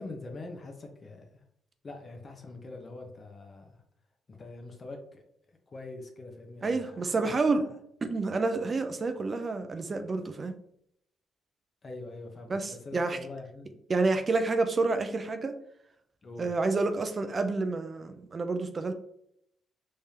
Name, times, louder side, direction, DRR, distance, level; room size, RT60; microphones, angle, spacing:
voice 1, 0.0-1.4 1.8-3.8 4.3-5.2 5.7-7.7 11.8-13.7 16.2-16.6, left 2 dB, 35° left, 3 dB, 0.8 m, -44 dB
voice 2, 6.6-7.6 8.0-10.5 12.5-13.2 13.9-15.6 16.4-18.9, right 3 dB, 35° right, 8 dB, 0.4 m, -29 dB
3.4 x 3.3 x 2.8 m, 0.72 s
cardioid pair, 90°, 0 cm